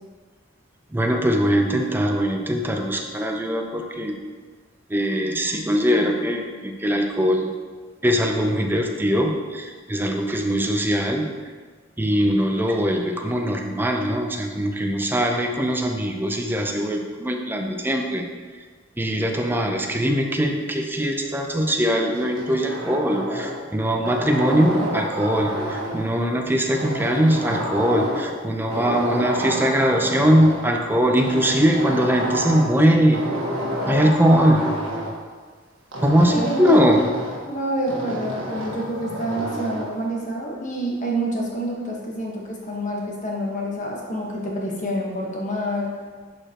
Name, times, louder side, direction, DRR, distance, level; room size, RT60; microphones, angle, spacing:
voice 1, 0.9-4.2 4.9-7.5 8.0-11.3 12.0-18.2 19.0-33.2 33.9-34.6 36.0-37.0, equal, 10° right, 3 dB, 0.6 m, -21 dB
sound 1, 22.1-23.7 24.0-26.1 26.7-28.4 28.7-30.7 31.2-32.8 33.1-35.1 35.9-37.5 37.9-39.9, right 1 dB, 80° right, 1.5 m, -29 dB
voice 2, 36.3-36.9 37.5-45.9, equal, 40° left, -2 dB, 1.4 m, -27 dB
11.0 x 5.0 x 3.0 m, 1.5 s
head